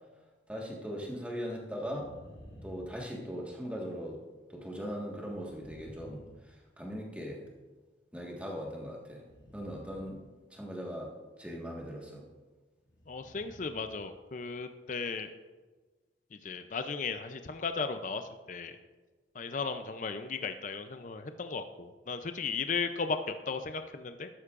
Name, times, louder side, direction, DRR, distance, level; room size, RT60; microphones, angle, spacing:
voice 1, 0.5-2.1 2.6-4.2 4.5-6.2 6.8-7.4 8.1-9.2 9.5-10.2 10.5-11.1 11.4-12.2, equal, 5° right, -2 dB, 1.5 m, -39 dB
sound 1, 1.8-3.7 5.2-7.1 9.2-10.9 12.8-14.2 14.4-14.5, equal, 70° left, 2.3 m, -54 dB
voice 2, 13.1-15.3 16.3-18.8 19.4-24.3, left 4 dB, 45° left, 8 dB, 0.5 m, -36 dB
13.0 x 11.5 x 2.5 m, 1.3 s
head